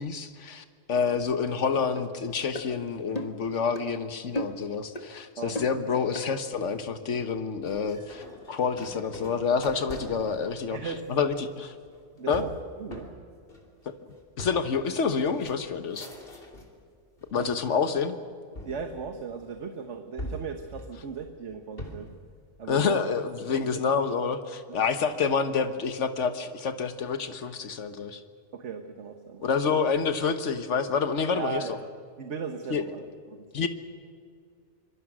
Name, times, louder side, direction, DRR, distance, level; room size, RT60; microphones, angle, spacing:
voice 1, 0.0-11.7 12.3-12.4 13.8-13.9 14.4-16.1 17.3-18.2 22.7-28.2 29.4-31.8 32.7-32.8 33.5-33.7, left 5 dB, 90° left, 9 dB, 1.5 m, -28 dB
sound 1, 2.0-2.1 2.5-2.7 3.2-3.4 3.7-3.9 4.4-4.7 5.0-5.1 5.6-5.8 6.1-6.3, left 1 dB, 35° left, 1.7 m, -34 dB
sound 2, 7.6-16.8 17.2-17.8 18.6-19.6 20.2-22.2, left 1 dB, 55° left, 3.2 m, -44 dB
voice 2, 10.7-11.2 12.1-12.5 12.8-13.1 17.3-17.5 18.6-22.1 22.6-23.0 23.5-23.7 24.7-24.8 28.5-29.5 31.3-31.8 32.2-33.0 33.3-33.7, right 6 dB, 80° right, 6 dB, 1.5 m, -37 dB
25.5 x 23.5 x 6.3 m, 2.2 s
omnidirectional pair, 1.2 m